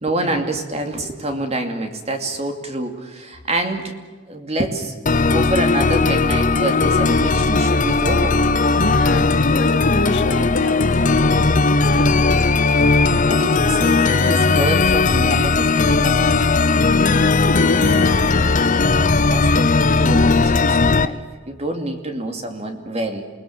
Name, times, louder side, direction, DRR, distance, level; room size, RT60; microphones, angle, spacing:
voice 1, 0.0-3.9 4.3-8.4 13.3-16.1 19.3-21.2 21.5-23.2, right 2 dB, 35° right, 5 dB, 2.7 m, -26 dB
sound 1, 5.1-21.1, left 3 dB, 40° left, 0.8 m, -17 dB
voice 2, 8.8-12.6 16.7-18.5, left 1 dB, 60° left, 7 dB, 2.1 m, -27 dB
28.0 x 20.5 x 7.5 m, 1.4 s
head